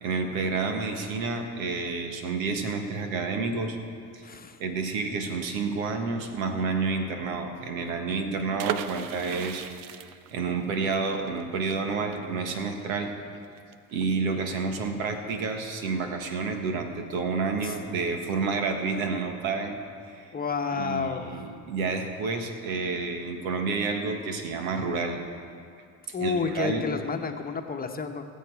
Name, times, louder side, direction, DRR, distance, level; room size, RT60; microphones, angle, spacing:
voice 1, 0.0-3.8 4.1-4.2 4.6-9.6 10.3-13.1 13.9-19.8 20.1-20.3 20.7-25.2 26.1-26.9, right 4 dB, 85° right, 5 dB, 1.5 m, -29 dB
voice 2, 4.2-4.6 17.6-17.7 20.3-21.4 26.1-28.3, left 5 dB, 20° left, 5 dB, 1.1 m, -30 dB
sound 1, 8.6-14.2 14.5-14.6 14.9-15.2, right 11 dB, 55° right, 0.7 m, -37 dB
21.0 x 7.3 x 4.7 m, 2.3 s
supercardioid pair, 85°, 40 cm